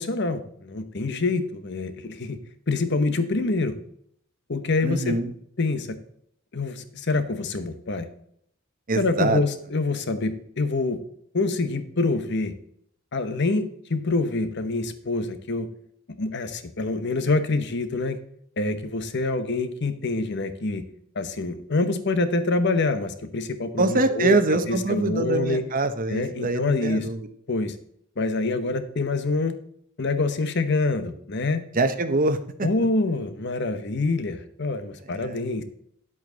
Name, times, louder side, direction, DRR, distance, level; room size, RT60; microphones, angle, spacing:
voice 1, 0.0-2.4 2.7-3.7 4.5-5.2 5.6-6.0 6.5-8.1 9.0-11.0 11.3-12.5 13.1-15.7 16.1-18.2 18.6-20.8 21.1-25.6 26.1-27.1 27.5-27.7 28.2-29.6 30.0-31.6 32.6-35.6, left 3 dB, 55° left, 10 dB, 1.0 m, -26 dB
voice 2, 4.8-5.3 8.9-9.4 23.8-27.3 31.7-32.7 35.1-35.4, right 2 dB, 40° right, 9 dB, 0.9 m, -24 dB
11.0 x 7.7 x 4.0 m, 0.67 s
head